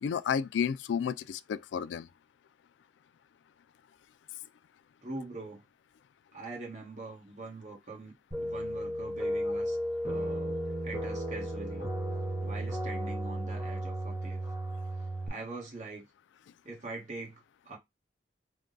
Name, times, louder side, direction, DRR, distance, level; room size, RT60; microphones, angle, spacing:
voice 1, 0.0-2.1, left 7 dB, 85° left, 0.3 m, -31 dB
voice 2, 5.0-5.6 6.3-9.8 10.0-10.6 10.8-11.9 12.4-14.4 15.3-16.0 16.6-17.8, right 2 dB, 40° right, 1.3 m, -43 dB
sound 1, 8.3-15.3, right 1 dB, 10° right, 0.8 m, -34 dB
3.5 x 2.2 x 3.8 m
head